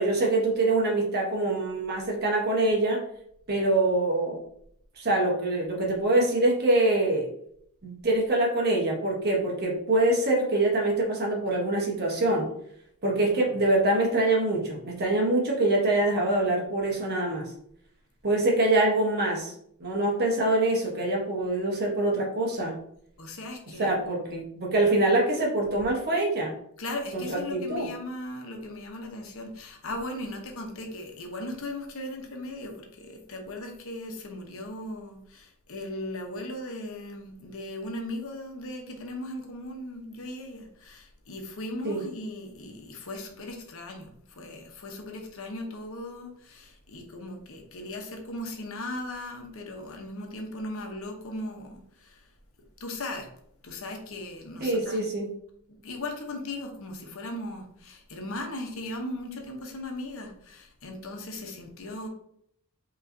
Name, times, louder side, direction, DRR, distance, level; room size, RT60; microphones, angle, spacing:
voice 1, 0.0-3.1 3.5-4.4 5.0-7.3 7.8-12.5 13.0-17.5 18.2-19.5 19.8-22.7 23.8-26.5 27.1-27.9 41.8-42.0 54.6-55.3, right 2 dB, 45° right, -1 dB, 1.1 m, -24 dB
voice 2, 23.2-24.3 26.8-52.2 52.8-53.3 53.6-55.0 55.7-62.1, left 1 dB, 65° left, 3 dB, 0.9 m, -38 dB
5.4 x 3.1 x 2.6 m, 0.70 s
head